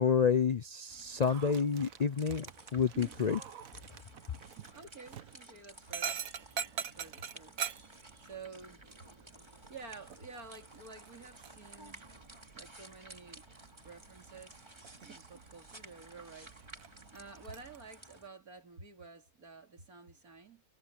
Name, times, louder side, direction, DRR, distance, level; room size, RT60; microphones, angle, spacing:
voice 1, 0.0-3.4, left 6 dB, 55° left, 0.4 m, -29 dB
sound 1, 0.9-18.3, right 1 dB, 20° right, 2.6 m, -55 dB
Dog, 1.1-17.8, right 8 dB, 70° right, 1.4 m, -46 dB
voice 2, 2.9-3.3 4.5-6.2 6.8-7.6 8.2-8.8 9.4-12.1 12.5-13.5 13.8-14.7 15.0-16.5 17.1-20.6, right 4 dB, 90° right, 3.5 m, -51 dB
omnidirectional pair, 1.5 m